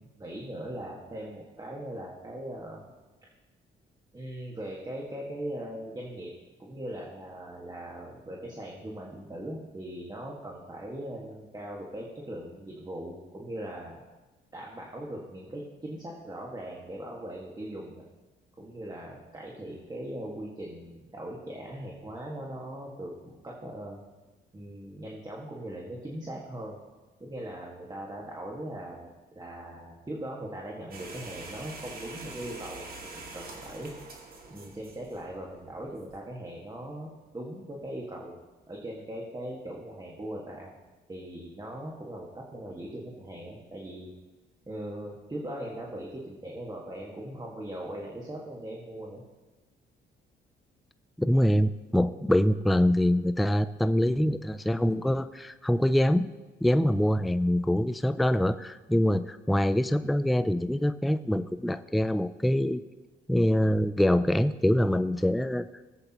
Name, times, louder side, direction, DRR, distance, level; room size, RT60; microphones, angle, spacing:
voice 1, 0.0-2.8 4.1-6.3 6.6-14.0 14.5-18.0 18.6-24.0 24.5-26.8 27.2-29.1 29.3-33.9 34.5-37.1 37.3-38.4 38.7-40.7 41.1-44.1 44.7-49.2, right 1 dB, 20° right, -2 dB, 1.7 m, -40 dB
sound 1, 30.9-36.2, right 3 dB, 50° right, 2.1 m, -45 dB
voice 2, 51.2-56.3 56.6-62.8 63.3-65.6, left 1 dB, ahead, 11 dB, 0.4 m, -24 dB
18.5 x 8.0 x 3.0 m, 1.2 s
cardioid pair, 90°, 20 cm